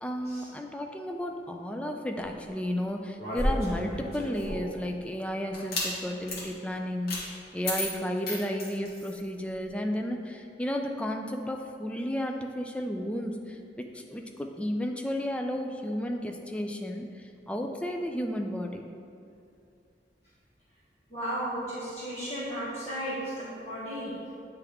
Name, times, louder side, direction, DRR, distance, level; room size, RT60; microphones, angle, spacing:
voice 1, 0.0-17.1 17.5-18.8, equal, 5° left, 3 dB, 0.3 m, -33 dB
sound 1, 3.2-4.8 5.5-5.9 6.3-6.4 7.1-7.2 7.6-9.2, left 1 dB, 55° left, 1.5 m, -32 dB
voice 2, 21.1-24.1, equal, 35° left, -10 dB, 1.1 m, -34 dB
8.4 x 3.4 x 3.5 m, 2.5 s
head